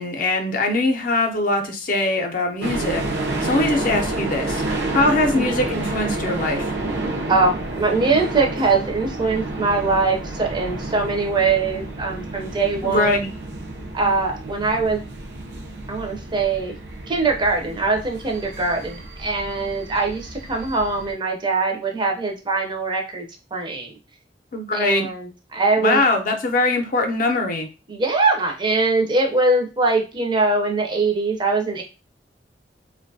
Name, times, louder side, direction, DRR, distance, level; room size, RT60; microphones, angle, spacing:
voice 1, 0.0-3.0 3.4-4.6 4.9-6.6 12.8-13.3 24.5-25.1 25.8-27.7, left 2 dB, 50° left, 3 dB, 0.5 m, -21 dB
sound 1, 2.6-21.1, right 2 dB, 80° right, 0.5 m, -30 dB
voice 2, 7.3-13.3 13.9-15.0 15.9-16.8 17.1-23.9 24.7-26.0 27.9-31.8, right 3 dB, 25° right, 2 dB, 0.5 m, -22 dB
2.5 x 2.2 x 2.6 m, 0.30 s
head